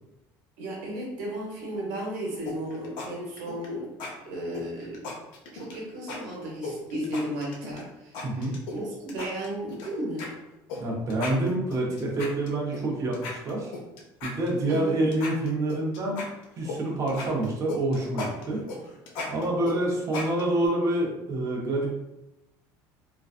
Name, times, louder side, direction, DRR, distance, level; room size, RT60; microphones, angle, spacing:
voice 1, 0.6-3.9 4.3-5.0 5.5-10.3 14.7-15.0, right 1 dB, 85° right, -3 dB, 0.9 m, -34 dB
sound 1, 2.5-3.1 3.4-3.7 4.0-4.1 4.5-5.8 6.1-6.2 6.6-7.8 8.1-8.8 9.1-9.9 10.2-10.3 10.7-10.8 11.1-12.8 13.1-14.8 15.1-16.8 17.1-20.7, left 3 dB, 75° left, 0.6 m, -36 dB
voice 2, 8.2-8.6 10.8-13.7 14.2-16.2 16.6-18.6 19.3-21.9, right 1 dB, 40° right, -1 dB, 0.7 m, -27 dB
2.5 x 2.3 x 2.4 m, 0.93 s
cardioid pair, 120°, 8 cm